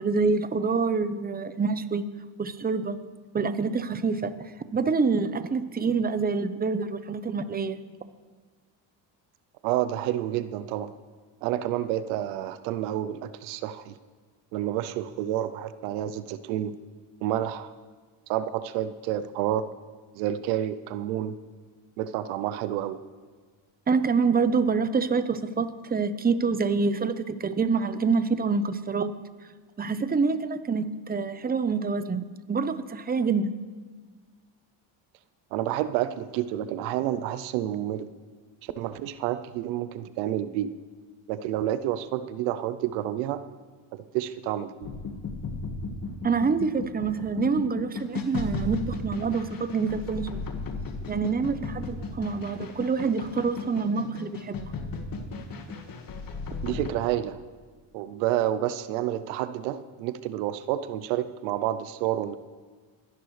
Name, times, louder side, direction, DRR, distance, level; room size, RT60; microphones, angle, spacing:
voice 1, 0.0-2.0 2.4-3.0 3.3-7.8 23.9-29.1 29.8-33.5 46.2-50.4 51.1-54.6, right 4 dB, 20° right, 12 dB, 0.8 m, -26 dB
voice 2, 9.6-10.9 11.4-13.9 14.5-16.8 17.2-17.7 18.3-19.6 20.1-21.4 22.0-23.0 35.5-38.1 38.6-40.7 41.3-43.4 43.9-44.7 56.6-57.4 57.9-62.4, right 12 dB, 90° right, 13 dB, 0.7 m, -29 dB
sound 1, 44.8-56.9, left 4 dB, 45° left, 1.6 m, -35 dB
22.0 x 10.5 x 3.3 m, 1.5 s
supercardioid pair, 80°, 50 cm